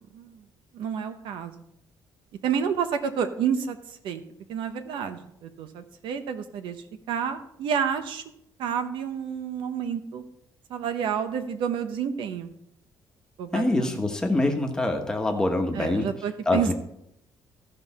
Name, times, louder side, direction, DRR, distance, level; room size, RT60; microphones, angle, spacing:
voice 1, 0.7-1.6 2.4-3.8 4.0-4.2 4.5-8.2 8.6-10.2 10.7-12.5 13.4-14.0 15.7-16.7, right 7 dB, 90° right, 10 dB, 0.9 m, -29 dB
voice 2, 13.5-16.1 16.5-16.7, left 2 dB, 10° left, 3 dB, 1.1 m, -25 dB
14.5 x 5.5 x 4.1 m, 0.78 s
cardioid pair, 160°, 8 cm